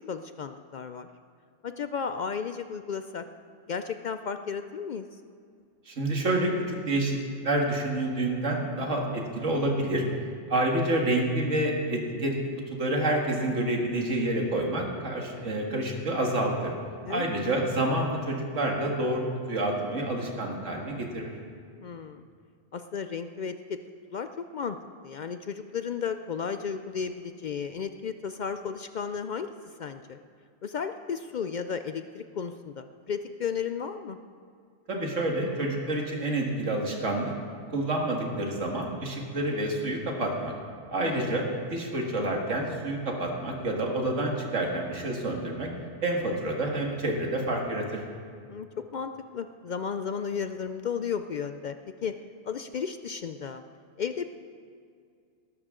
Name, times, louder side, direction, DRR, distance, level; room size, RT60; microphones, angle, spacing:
voice 1, 0.1-1.1 1.6-3.2 3.7-5.0 17.1-17.3 21.8-22.3 22.7-23.8 24.1-24.8 25.0-29.5 29.8-30.2 30.6-34.2 41.0-41.3 48.5-48.7 48.9-51.7 52.0-52.1 52.4-53.6 54.0-54.3, left 6 dB, 65° left, 9 dB, 0.4 m, -34 dB
voice 2, 5.9-7.2 7.4-10.0 10.5-12.3 12.7-16.7 17.1-21.3 34.9-37.3 37.7-40.5 40.9-45.7 46.0-48.0, right 1 dB, 80° right, 0 dB, 2.2 m, -28 dB
20.0 x 12.0 x 3.7 m, 2.3 s
omnidirectional pair, 1.2 m